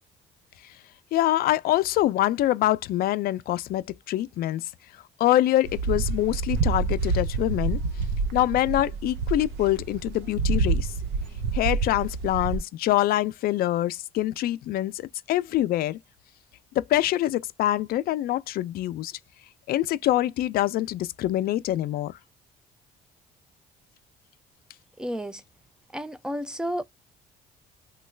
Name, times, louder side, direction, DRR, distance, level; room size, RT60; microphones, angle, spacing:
voice 1, 1.1-7.8 8.3-10.9 11.5-16.0 16.7-19.1 19.7-22.2, left 14 dB, 65° left, 0.4 m, -25 dB
sound 1, 5.6-12.6, right 4 dB, 90° right, 0.6 m, -27 dB
voice 2, 25.0-25.4 25.9-26.8, equal, 5° right, 0.4 m, -31 dB
3.1 x 2.2 x 3.1 m
cardioid pair, 110°, 17 cm